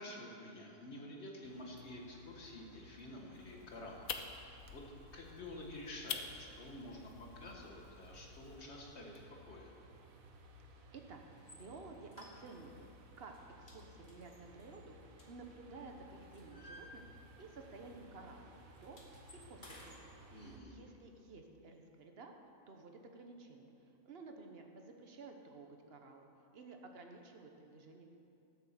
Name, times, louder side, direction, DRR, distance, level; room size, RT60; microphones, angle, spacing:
voice 1, 0.0-4.1 4.5-4.8 5.1-9.2 9.5-9.7 20.3-20.7, left 1 dB, 50° left, 0 dB, 1.8 m, -49 dB
sound 1, 1.4-20.6, equal, 85° right, 1.4 m, -59 dB
sound 2, 3.3-8.6, left 7 dB, 85° left, 1.2 m, -48 dB
sound 3, 11.4-11.6 12.1-12.8 13.2-13.4 13.7-15.7 16.1-17.5 17.8-18.0 18.3-20.0, left 1 dB, 35° left, 1.8 m, -57 dB
voice 2, 11.5-12.9 13.2-19.0 19.3-20.0 20.4-22.3 22.7-26.3 26.5-28.1, right 3 dB, 50° right, 4 dB, 1.2 m, -53 dB
12.0 x 6.8 x 7.4 m, 2.7 s
omnidirectional pair, 1.4 m